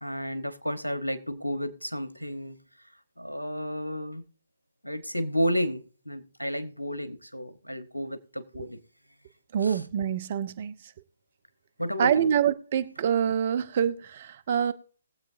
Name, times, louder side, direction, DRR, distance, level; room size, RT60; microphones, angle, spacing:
voice 1, 0.0-2.6 3.2-4.2 4.8-8.8 9.6-9.8 11.8-12.3, equal, 85° left, 1.0 m, -32 dB
voice 2, 9.5-10.7 12.0-14.7, right 8 dB, 40° right, 0.6 m, -26 dB
21.0 x 7.8 x 2.6 m
figure-of-eight pair, 135°, 0 cm